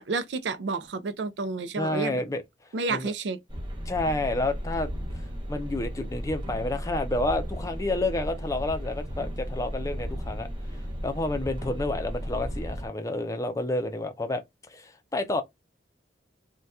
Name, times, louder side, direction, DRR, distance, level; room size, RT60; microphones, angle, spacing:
voice 1, 0.0-2.2 2.7-3.4, right 3 dB, 75° right, 0.5 m, -30 dB
voice 2, 1.8-2.4 2.9-3.1 3.9-10.5 11.0-14.4 14.7-15.4, left 2 dB, 20° left, 0.5 m, -30 dB
sound 1, 3.5-12.9, equal, 25° right, 0.7 m, -34 dB
2.7 x 2.2 x 3.4 m
head